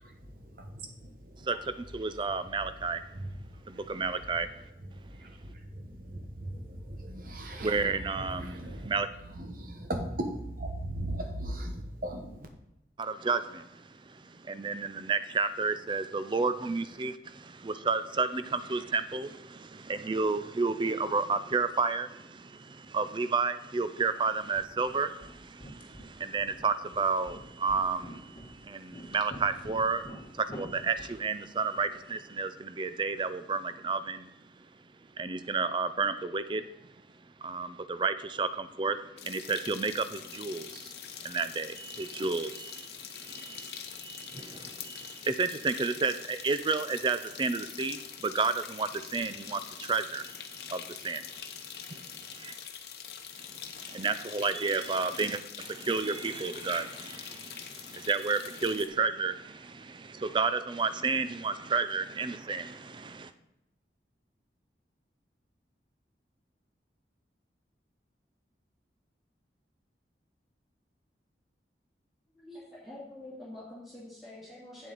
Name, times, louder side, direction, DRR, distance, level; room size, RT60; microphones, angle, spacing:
voice 1, 0.0-12.5, right 1 dB, 50° right, 1.1 m, -40 dB
voice 2, 1.9-3.0 3.7-4.5 7.6-8.6 8.9-9.1 13.0-34.3 35.2-36.7 37.4-52.5 53.4-63.3, right 4 dB, 25° right, 0.4 m, -32 dB
sound 1, 24.0-32.2, equal, 30° left, 1.3 m, -49 dB
sound 2, 39.2-58.9, left 8 dB, 65° left, 0.9 m, -44 dB
voice 3, 72.3-74.9, left 1 dB, ahead, 2.9 m, -46 dB
8.3 x 7.5 x 4.0 m
head